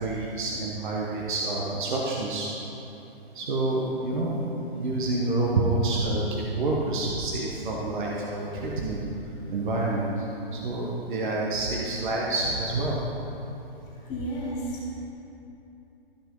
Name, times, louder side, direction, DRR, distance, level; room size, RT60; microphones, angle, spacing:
voice 1, 0.0-2.5 3.3-9.0 9.5-10.3 10.5-13.0, right 2 dB, 50° right, -3 dB, 1.2 m, -28 dB
voice 2, 13.8-15.0, right 1 dB, 10° left, -6 dB, 0.6 m, -33 dB
13.0 x 5.9 x 3.8 m, 2.9 s
hypercardioid pair, 180°, 30 cm